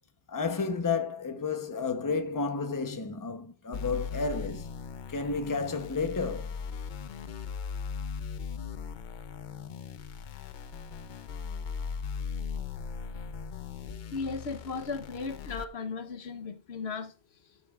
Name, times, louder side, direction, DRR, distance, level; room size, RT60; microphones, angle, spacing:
voice 1, 0.3-4.7 5.1-6.6, left 4 dB, 20° left, 0.8 m, -31 dB
sound 1, 3.7-15.6, left 6 dB, 55° left, 0.6 m, -38 dB
voice 2, 13.8-17.6, left 4 dB, 80° left, 1.2 m, -37 dB
12.0 x 8.2 x 2.4 m
omnidirectional pair, 1.1 m